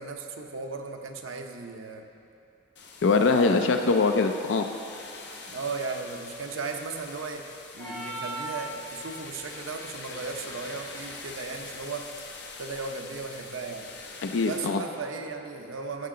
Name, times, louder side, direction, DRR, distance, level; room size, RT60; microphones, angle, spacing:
voice 1, 0.0-2.1 3.1-3.6 5.5-7.5 7.7-12.1 12.6-13.9 14.5-16.1, right 4 dB, 90° right, 4 dB, 0.8 m, -36 dB
spooky leaves and wind, 2.8-14.7, left 3 dB, 60° left, 1.0 m, -44 dB
voice 2, 3.0-4.7 14.2-14.8, left 4 dB, 75° left, 6 dB, 0.4 m, -23 dB
sound 1, 7.8-9.2, right 2 dB, 15° left, 1.6 m, -36 dB
14.5 x 6.7 x 3.8 m, 2.8 s
head